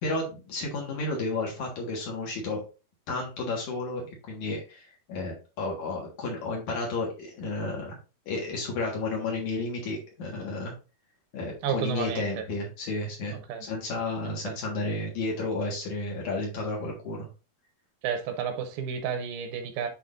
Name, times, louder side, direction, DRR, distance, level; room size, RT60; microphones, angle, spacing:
voice 1, 0.0-2.6 3.1-8.0 8.3-10.7 11.3-17.3, left 2 dB, 60° left, 2.8 m, -32 dB
voice 2, 11.6-12.4 13.3-13.6 14.2-14.6 18.0-19.9, right 7 dB, 80° right, 2.8 m, -31 dB
10.0 x 3.9 x 2.6 m
omnidirectional pair, 4.3 m